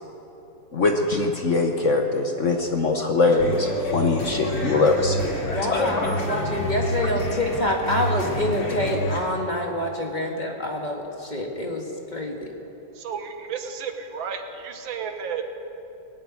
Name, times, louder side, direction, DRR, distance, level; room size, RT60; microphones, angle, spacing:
voice 1, 0.7-6.4, left 3 dB, 50° left, 3 dB, 1.1 m, -22 dB
sound 1, 3.4-9.2, equal, 90° left, 3.2 m, -29 dB
voice 2, 5.5-11.8 12.1-12.4, left 1 dB, 25° left, 1 dB, 1.5 m, -26 dB
voice 3, 13.0-15.5, right 6 dB, 85° right, 6 dB, 1.9 m, -32 dB
20.5 x 7.8 x 9.1 m, 2.8 s
omnidirectional pair, 2.1 m